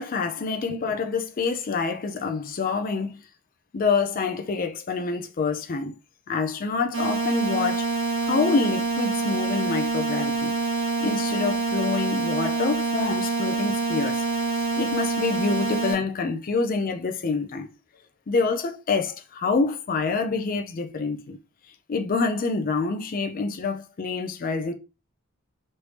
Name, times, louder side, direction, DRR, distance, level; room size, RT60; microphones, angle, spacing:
voice 1, 0.0-3.2 3.7-5.9 6.3-7.9 8.2-14.2 14.5-17.7 18.3-21.4 21.9-24.7, left 4 dB, 40° left, 0.4 m, -27 dB
sound 1, 6.9-15.9, right 4 dB, 65° right, 1.4 m, -26 dB
3.2 x 2.6 x 3.2 m
head